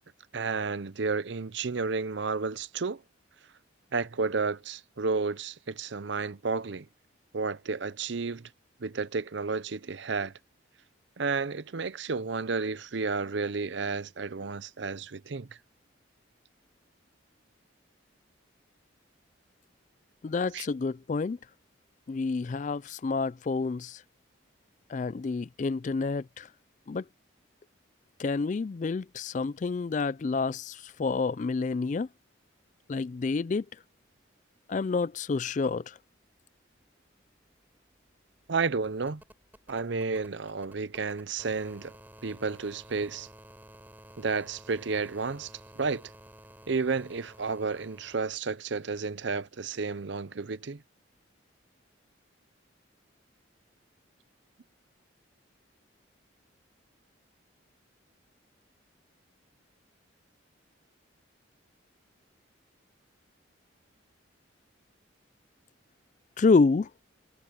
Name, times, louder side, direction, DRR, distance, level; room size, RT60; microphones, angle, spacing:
voice 1, 0.3-3.0 3.9-6.9 7.3-8.5 8.8-10.3 11.2-15.5 20.5-20.7 38.5-39.2 39.7-41.9 42.2-43.3 44.2-46.0 46.7-50.8, right 4 dB, 65° right, 0.6 m, -31 dB
voice 2, 20.2-21.4 22.1-24.0 24.9-26.5 26.9-27.0 28.2-32.1 32.9-33.7 34.7-36.0 66.4-66.9, left 4 dB, 40° left, 0.3 m, -28 dB
sound 1, 37.2-48.1 49.6-49.7, right 1 dB, 10° right, 6.0 m, -53 dB
head